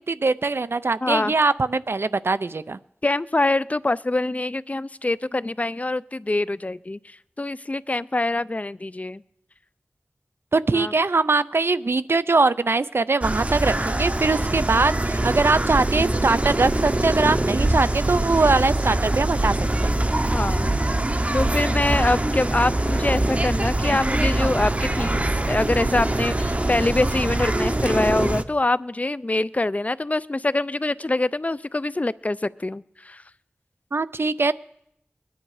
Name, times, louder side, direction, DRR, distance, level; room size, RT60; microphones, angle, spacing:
voice 1, 0.1-2.8 10.5-19.6 19.8-19.9 33.9-34.5, right 3 dB, 70° right, 15 dB, 0.5 m, -22 dB
voice 2, 1.0-1.3 3.0-9.2 10.7-10.9 20.3-20.8 21.3-33.2, left 2 dB, 35° left, 18 dB, 0.4 m, -25 dB
sound 1, 13.2-28.4, right 1 dB, 35° right, 0.8 m, -23 dB
22.0 x 10.0 x 4.9 m, 0.76 s
wide cardioid pair, 45°, 4 cm